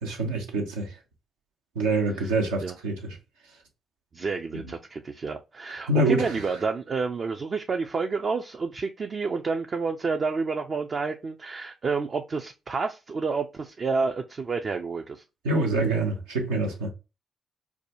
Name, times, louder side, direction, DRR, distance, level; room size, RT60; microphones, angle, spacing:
voice 1, 0.0-1.0 1.7-3.2 4.5-4.7 5.7-6.4 15.4-16.9, right 2 dB, 85° right, 0.9 m, -26 dB
voice 2, 4.1-15.2, right 4 dB, 45° right, 0.5 m, -29 dB
4.7 x 2.3 x 2.6 m
hypercardioid pair, 40°, 0 cm